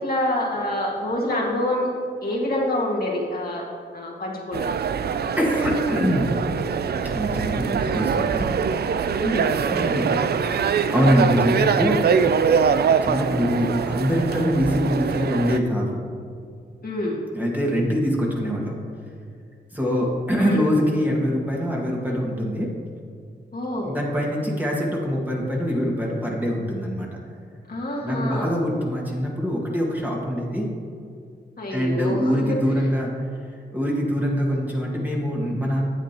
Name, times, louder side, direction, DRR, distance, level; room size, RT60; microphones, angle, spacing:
voice 1, 0.0-1.9 2.2-3.7 3.9-4.7 9.2-9.6 16.8-17.2 20.4-20.8 23.5-24.0 27.7-28.5 31.6-32.6, left 1 dB, 50° left, -3 dB, 1.8 m, -26 dB
sound 1, 4.5-15.6, right 6 dB, 60° right, 0.4 m, -23 dB
voice 2, 5.4-6.3 7.0-8.5 9.5-10.3 10.9-12.0 13.0-16.0 17.3-18.7 19.7-22.7 23.8-27.2 28.0-30.7 31.7-33.1 33.7-35.9, equal, 10° right, -3 dB, 1.9 m, -24 dB
10.0 x 7.8 x 3.0 m, 2.3 s
cardioid pair, 60°, 19 cm